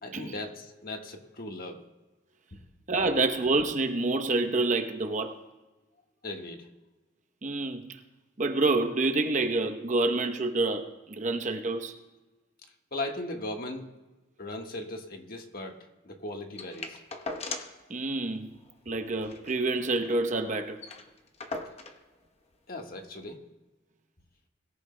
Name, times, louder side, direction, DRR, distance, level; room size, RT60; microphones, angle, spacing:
voice 1, 0.0-1.8 2.5-2.6 6.2-6.7 12.9-13.9 14.4-15.8 16.0-17.0 22.7-23.4, left 2 dB, 50° left, 1.4 m, -38 dB
voice 2, 2.9-5.4 7.4-8.0 8.4-12.0 17.9-18.5 18.9-20.8, right 2 dB, 40° right, 0.8 m, -28 dB
sound 1, 16.6-17.9 18.2-18.3 18.5-18.7 19.1-20.2 20.5-20.6 20.8-22.0 22.9-23.0, left 3 dB, 35° left, 1.0 m, -39 dB
23.0 x 14.5 x 2.2 m
head